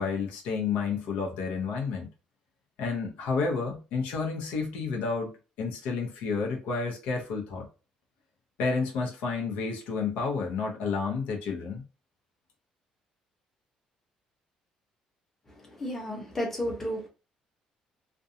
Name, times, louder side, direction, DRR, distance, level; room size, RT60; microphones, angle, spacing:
voice 1, 0.0-2.1 2.8-5.3 5.6-7.7 8.6-11.8, left 4 dB, 90° left, 0.7 m, -30 dB
voice 2, 15.6-17.1, equal, 15° left, 0.8 m, -32 dB
2.5 x 2.2 x 2.7 m
cardioid pair, 155°, 2 cm